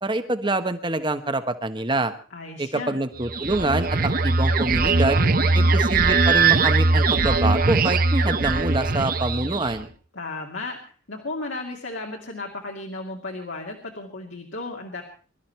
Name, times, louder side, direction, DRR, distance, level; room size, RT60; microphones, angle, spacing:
voice 1, 0.0-2.1 2.6-5.2 5.5-9.9, right 2 dB, 25° right, 9 dB, 1.2 m, -26 dB
voice 2, 2.3-3.0 5.4-5.8 10.1-10.8 11.1-15.0, left 2 dB, 70° left, 0 dB, 2.5 m, -34 dB
sound 1, 3.2-9.8, right 3 dB, 45° right, 1.0 m, -20 dB
23.5 x 13.0 x 4.6 m, 0.40 s
head